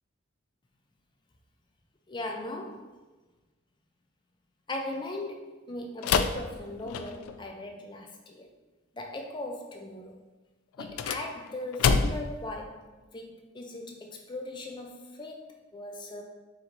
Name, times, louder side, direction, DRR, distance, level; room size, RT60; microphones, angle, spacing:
voice 1, 2.1-2.9 4.7-8.5 8.9-10.2 10.8-16.2, left 2 dB, 20° left, 2 dB, 0.4 m, -39 dB
sound 1, 6.0-7.4 10.7-12.4, left 5 dB, 90° left, 0.3 m, -28 dB
4.4 x 2.6 x 3.9 m, 1.2 s
head